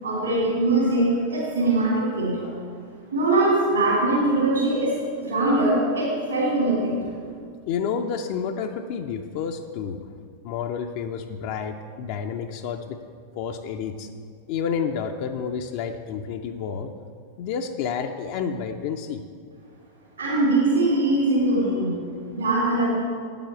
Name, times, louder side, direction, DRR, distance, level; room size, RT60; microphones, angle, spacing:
voice 1, 0.0-2.5 3.1-7.0 20.2-22.0 22.3-22.9, right 2 dB, 70° right, -6 dB, 2.9 m, -22 dB
voice 2, 7.7-10.0 10.4-13.0 13.4-14.1 14.5-16.9 17.4-19.2, left 7 dB, 45° left, 5 dB, 0.5 m, -30 dB
8.7 x 7.1 x 6.7 m, 2.2 s
figure-of-eight pair, 90°, 0 cm